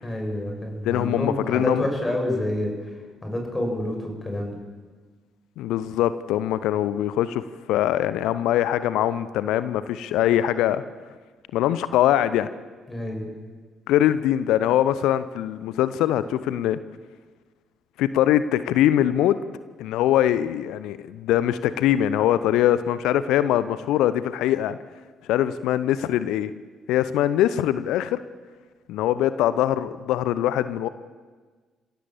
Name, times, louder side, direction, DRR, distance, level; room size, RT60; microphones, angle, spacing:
voice 1, 0.0-2.7 3.2-4.5 12.9-13.2, left 1 dB, 20° left, 2 dB, 7.2 m, -28 dB
voice 2, 0.8-1.9 5.6-7.4 7.7-10.8 11.5-12.5 13.9-16.8 18.0-19.4 19.8-24.8 25.3-26.5 26.9-28.2 28.9-30.9, left 12 dB, 65° left, 14 dB, 0.7 m, -22 dB
27.5 x 16.5 x 7.5 m, 1.4 s
figure-of-eight pair, 45°, 0 cm